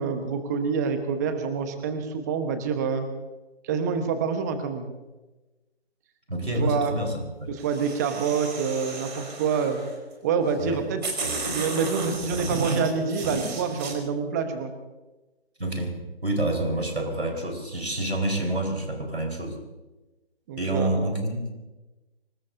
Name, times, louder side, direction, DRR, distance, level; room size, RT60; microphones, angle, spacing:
voice 1, 0.0-3.1 3.6-4.9 6.6-6.9 7.5-9.8 10.2-11.0 11.4-14.7 20.5-20.9, right 6 dB, 15° right, 7 dB, 1.2 m, -27 dB
voice 2, 6.3-7.5 10.6-10.8 15.6-16.0 16.2-19.6 20.6-21.5, right 1 dB, 90° right, 3 dB, 4.7 m, -28 dB
sound 1, 7.6-9.9 10.6-10.7 11.0-13.9, right 3 dB, 45° right, 4.2 m, -32 dB
25.5 x 20.0 x 2.7 m, 1.1 s
figure-of-eight pair, 150°, 32 cm